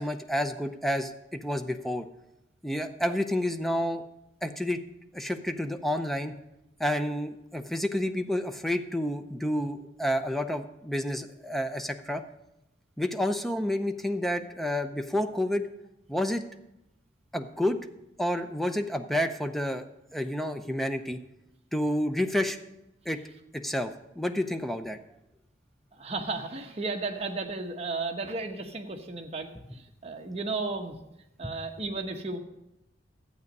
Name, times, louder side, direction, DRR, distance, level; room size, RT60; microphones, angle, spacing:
voice 1, 0.0-2.1 2.6-4.0 4.4-4.8 5.1-6.3 6.8-12.2 13.0-15.7 16.1-16.5 17.3-17.8 18.2-19.8 20.1-21.2 21.7-22.6 23.1-23.2 23.5-25.0 31.4-31.5, left 1 dB, ahead, 7 dB, 0.6 m, -29 dB
voice 2, 26.0-30.9 31.4-32.4, right 3 dB, 35° right, 3 dB, 1.1 m, -34 dB
12.5 x 8.4 x 5.3 m, 0.89 s
head